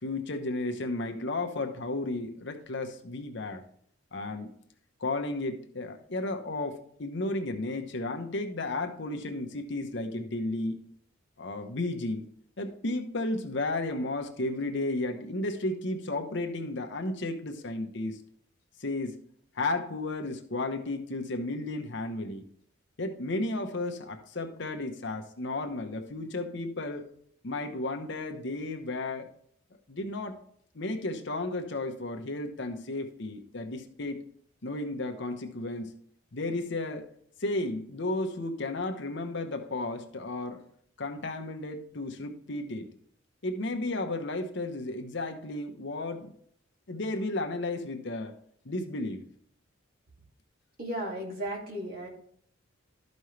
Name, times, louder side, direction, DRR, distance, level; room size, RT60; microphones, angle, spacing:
voice 1, 0.0-3.6 4.1-4.5 5.0-10.8 11.4-12.2 12.6-18.2 18.8-19.2 19.5-22.5 23.0-27.1 27.4-29.3 29.9-30.4 30.7-34.2 34.6-35.9 36.3-37.1 37.4-40.6 41.0-42.9 43.4-46.3 46.9-48.3 48.6-49.2, left 2 dB, 60° left, 0.9 m, -33 dB
voice 2, 50.8-52.1, right 1 dB, 45° right, 2.4 m, -35 dB
12.5 x 5.3 x 3.2 m
head